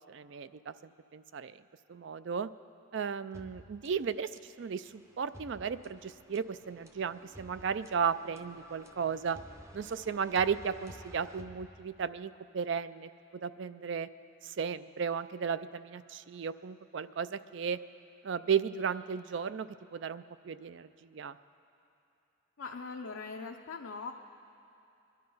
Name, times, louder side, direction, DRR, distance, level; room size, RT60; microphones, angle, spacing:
voice 1, 0.1-0.7 1.1-1.6 1.9-2.5 2.9-4.3 4.6-4.9 5.2-9.4 9.7-14.1 14.4-17.8 18.2-21.4, right 6 dB, 55° right, 14 dB, 0.4 m, -34 dB
sound 1, 3.3-12.3, right 1 dB, 15° right, 0.6 m, -54 dB
voice 2, 22.6-24.1, left 4 dB, 75° left, 1 dB, 0.6 m, -41 dB
22.5 x 11.5 x 5.5 m, 2.8 s
head